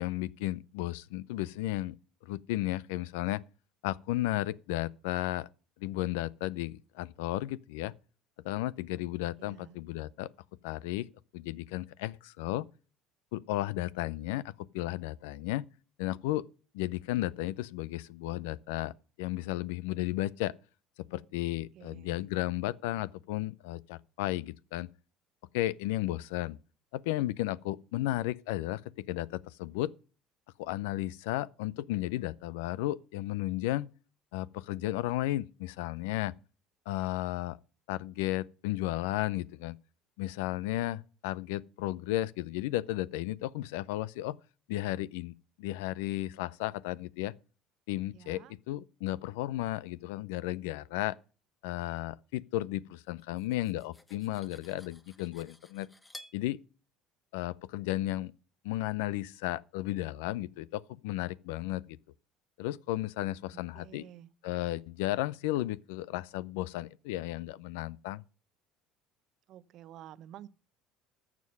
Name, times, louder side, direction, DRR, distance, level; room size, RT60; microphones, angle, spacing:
voice 1, 0.0-2.0 2.2-3.4 3.8-5.5 5.8-7.9 8.4-10.3 10.6-11.1 11.3-12.6 13.3-15.7 16.0-16.4 16.7-18.9 19.2-20.5 21.0-24.9 25.5-26.6 26.9-29.9 30.6-33.9 34.3-36.3 36.9-37.6 37.9-39.8 40.2-44.4 44.7-47.3 47.9-51.2 51.6-55.9 56.3-56.6 57.3-58.3 58.6-62.0 62.6-64.1 64.4-68.2, left 16 dB, 75° left, 0.5 m, -34 dB
voice 2, 9.4-9.8 21.7-22.3 48.1-48.5 63.5-64.3 69.5-70.5, right 11 dB, 60° right, 0.8 m, -51 dB
Cutlery silverware, 53.2-56.4, left 1 dB, 15° left, 1.6 m, -53 dB
13.5 x 7.5 x 5.4 m
hypercardioid pair, 70°, 0 cm